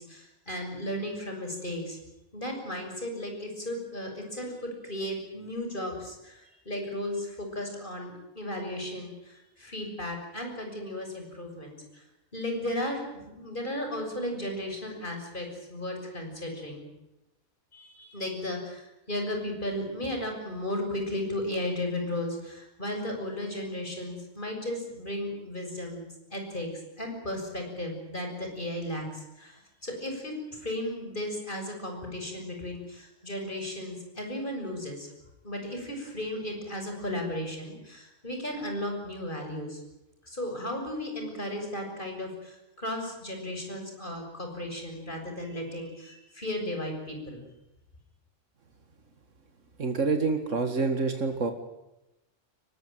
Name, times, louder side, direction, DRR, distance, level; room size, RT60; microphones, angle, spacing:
voice 1, 0.0-2.0 2.3-11.8 12.3-16.9 17.7-26.7 27.0-35.1 35.4-39.8 40.2-47.4, left 1 dB, 45° left, 3 dB, 7.0 m, -35 dB
voice 2, 49.8-51.5, right 4 dB, 90° right, 6 dB, 2.3 m, -27 dB
23.0 x 20.0 x 9.2 m, 0.93 s
omnidirectional pair, 1.2 m